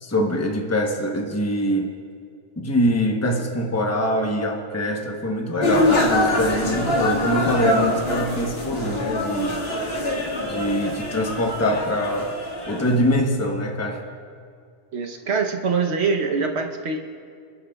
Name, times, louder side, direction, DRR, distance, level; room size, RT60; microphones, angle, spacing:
voice 1, 0.0-1.9 2.6-9.6 10.4-12.3 12.7-14.0, equal, 15° left, 1 dB, 0.9 m, -24 dB
sound 1, 5.6-13.1, left 1 dB, 60° left, 2.0 m, -24 dB
voice 2, 14.9-17.0, right 4 dB, 70° right, 3 dB, 1.2 m, -24 dB
28.5 x 10.0 x 2.3 m, 2.3 s
omnidirectional pair, 1.2 m